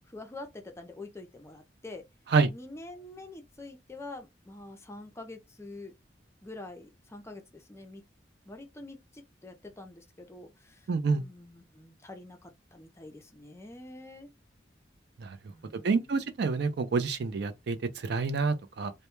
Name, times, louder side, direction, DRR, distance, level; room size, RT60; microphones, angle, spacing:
voice 1, 0.1-2.0 2.5-5.9 6.4-8.0 8.5-14.3 15.5-16.1, left 2 dB, 15° left, 0.5 m, -46 dB
voice 2, 10.9-11.2 15.2-15.4 15.7-18.9, right 4 dB, 65° right, 0.4 m, -28 dB
2.2 x 2.1 x 2.9 m
head